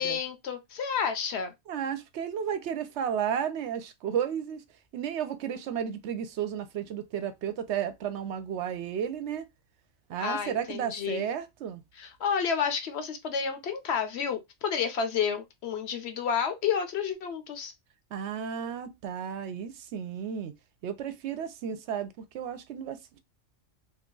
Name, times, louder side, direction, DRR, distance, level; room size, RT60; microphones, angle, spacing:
voice 1, 0.0-1.5 10.2-11.3 12.0-17.7, left 7 dB, 65° left, 0.9 m, -30 dB
voice 2, 1.7-4.6 4.9-9.5 10.1-11.8 18.1-20.5 20.8-23.2, right 8 dB, 70° right, 0.8 m, -33 dB
2.9 x 2.3 x 3.7 m
omnidirectional pair, 1.2 m